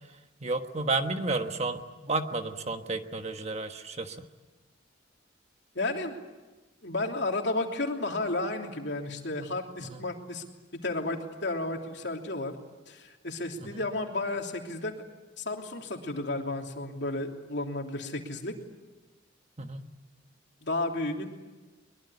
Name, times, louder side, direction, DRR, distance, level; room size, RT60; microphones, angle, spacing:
voice 1, 0.4-4.2 9.8-10.0 13.6-13.7 19.6-19.9, right 3 dB, 35° right, 7 dB, 1.4 m, -32 dB
voice 2, 5.7-6.2 6.8-10.4 10.7-12.5 12.9-14.9 15.4-18.5 20.6-21.3, left 2 dB, 65° left, 2 dB, 3.2 m, -32 dB
23.0 x 22.5 x 9.8 m, 1.2 s
head